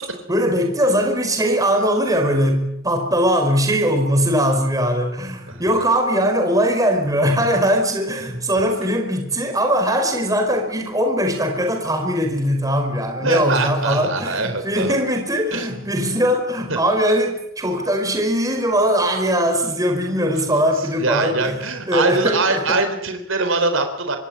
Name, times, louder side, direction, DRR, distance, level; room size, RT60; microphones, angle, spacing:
voice 1, 0.3-21.6 21.9-22.8, equal, 15° right, 5.0 m, -20 dB
voice 2, 13.2-15.0 15.5-15.8 16.7-16.8 21.0-24.2, right 3 dB, 70° right, 4.1 m, -23 dB
25.5 x 19.5 x 10.0 m
head